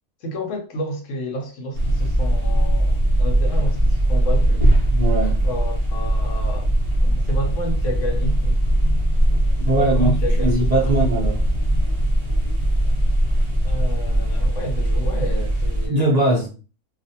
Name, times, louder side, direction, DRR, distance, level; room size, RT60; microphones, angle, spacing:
voice 1, 0.2-4.7 5.3-6.7 7.0-8.6 9.7-11.1 13.6-16.4, right 1 dB, 60° left, 1.0 m, -30 dB
sound 1, 1.7-15.9, right 1 dB, 25° right, 0.7 m, -20 dB
voice 2, 4.9-5.4 9.6-11.4 15.9-16.5, right 1 dB, 65° right, 0.3 m, -21 dB
2.4 x 2.4 x 2.7 m
omnidirectional pair, 1.6 m